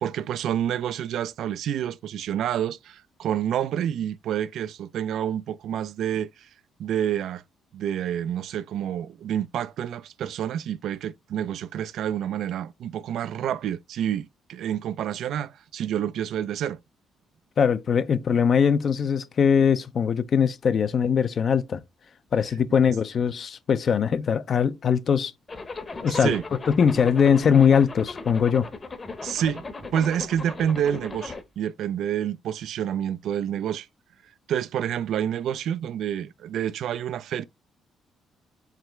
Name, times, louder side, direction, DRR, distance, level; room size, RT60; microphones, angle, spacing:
voice 1, 0.0-6.5 6.8-7.4 7.7-16.8 26.1-26.4 29.2-29.6 29.9-33.9 34.5-37.4, right 10 dB, 75° right, 0.3 m, -28 dB
voice 2, 17.6-21.8 22.3-25.3 26.0-26.3 26.7-28.7, left 7 dB, 50° left, 0.5 m, -21 dB
Zipper (clothing), 25.5-31.4, left 3 dB, 30° left, 0.8 m, -37 dB
4.9 x 3.2 x 3.1 m
cardioid pair, 90°, 0 cm